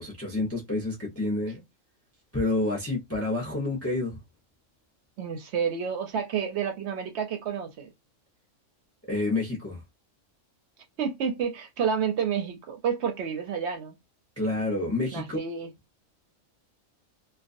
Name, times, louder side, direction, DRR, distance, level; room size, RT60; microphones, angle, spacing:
voice 1, 0.0-1.6 2.3-4.2 9.1-9.8 14.4-15.4, left 2 dB, 20° left, 0.4 m, -28 dB
voice 2, 5.2-7.9 11.0-14.0 15.1-15.7, right 7 dB, 65° right, 0.8 m, -29 dB
2.4 x 2.2 x 2.5 m
omnidirectional pair, 1.4 m